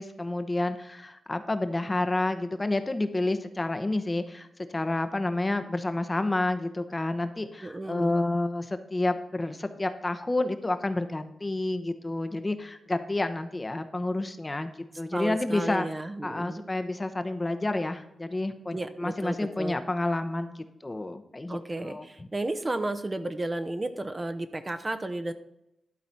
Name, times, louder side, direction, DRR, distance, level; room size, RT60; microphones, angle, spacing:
voice 1, 0.0-4.5 4.7-15.9 16.2-22.3, left 2 dB, 25° left, 8 dB, 0.9 m, -29 dB
voice 2, 7.6-8.1 15.1-16.6 18.7-19.8 21.5-25.3, right 2 dB, 30° right, 9 dB, 0.8 m, -33 dB
12.0 x 4.0 x 5.8 m, 0.85 s
cardioid pair, 55°, 0 cm